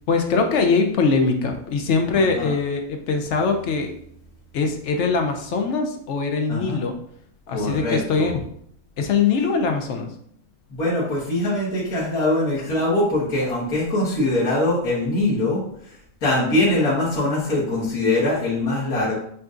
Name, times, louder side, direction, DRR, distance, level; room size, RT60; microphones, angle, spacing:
voice 1, 0.1-3.9 4.5-6.9 7.5-8.4 9.0-10.1, left 4 dB, 65° left, 4 dB, 0.8 m, -22 dB
voice 2, 2.1-2.5 6.5-6.8 7.5-8.3 10.7-16.0 16.2-19.1, left 1 dB, 80° left, -8 dB, 1.9 m, -22 dB
6.8 x 2.6 x 2.4 m, 0.66 s
omnidirectional pair, 1.6 m